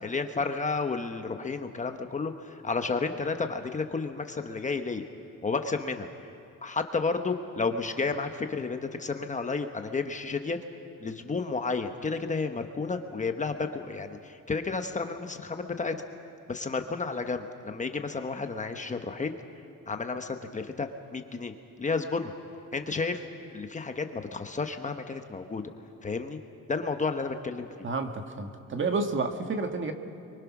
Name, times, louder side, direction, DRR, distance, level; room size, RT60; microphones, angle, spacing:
voice 1, 0.0-5.0 5.4-6.1 6.6-10.6 11.0-15.9 16.5-19.3 19.9-21.5 21.8-22.3 22.7-23.2 23.5-25.6 26.0-26.4 26.7-27.8, left 4 dB, 25° left, 6 dB, 1.1 m, -31 dB
voice 2, 27.8-29.9, right 3 dB, 40° right, 5 dB, 1.7 m, -30 dB
29.0 x 24.0 x 6.1 m, 2.9 s
cardioid pair, 145°, 31 cm